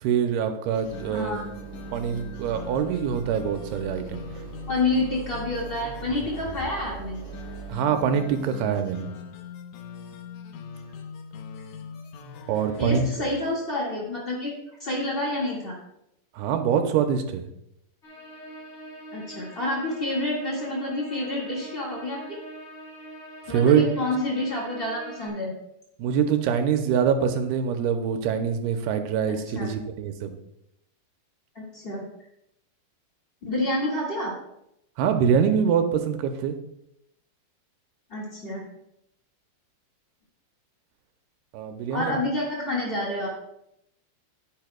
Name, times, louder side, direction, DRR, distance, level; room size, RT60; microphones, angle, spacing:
voice 1, 0.0-1.4 1.9-4.2 7.7-9.1 12.5-13.1 16.4-17.5 23.5-23.9 26.0-30.4 35.0-36.6 41.5-42.2, right 7 dB, 90° right, 6 dB, 2.7 m, -24 dB
sound 1, 0.7-13.6, left 5 dB, 80° left, 1.7 m, -42 dB
sound 2, 0.8-7.7, right 6 dB, 65° right, 1.5 m, -41 dB
voice 2, 1.1-1.4 4.7-7.2 12.8-14.5 14.8-15.8 19.1-22.2 23.5-25.5 29.3-29.7 31.5-32.0 33.4-34.3 38.1-38.6 41.9-43.3, left 2 dB, 55° left, -4 dB, 0.6 m, -28 dB
sound 3, 18.0-25.3, right 1 dB, 25° left, 1.6 m, -43 dB
10.5 x 10.5 x 2.3 m, 0.80 s
omnidirectional pair, 4.5 m